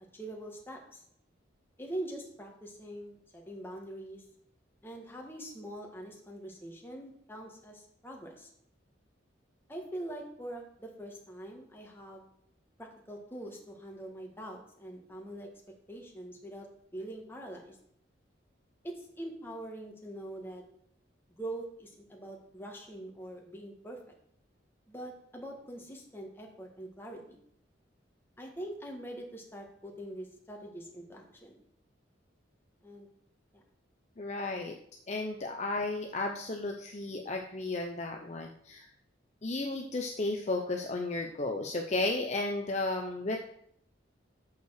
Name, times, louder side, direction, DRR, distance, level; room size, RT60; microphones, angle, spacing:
voice 1, 0.1-1.0 1.8-4.2 4.8-8.5 9.7-12.3 12.8-15.5 15.9-16.7 16.9-17.8 18.8-20.6 21.4-24.0 24.9-27.4 28.4-31.6 32.8-33.1 33.5-33.6, right 1 dB, 10° left, 0 dB, 1.5 m, -43 dB
voice 2, 34.2-34.8 35.1-38.9 39.4-43.4, left 2 dB, 35° left, 2 dB, 0.6 m, -33 dB
6.7 x 5.4 x 6.4 m, 0.69 s
head